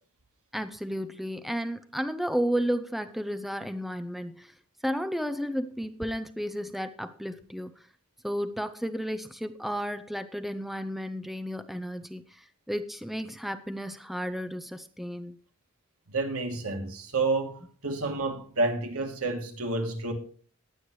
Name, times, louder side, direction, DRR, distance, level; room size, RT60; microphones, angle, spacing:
voice 1, 0.5-4.5 4.8-7.8 8.2-15.4, equal, ahead, 0.6 m, -33 dB
voice 2, 16.1-20.1, right 3 dB, 75° right, 2.7 m, -29 dB
19.5 x 8.5 x 3.2 m
head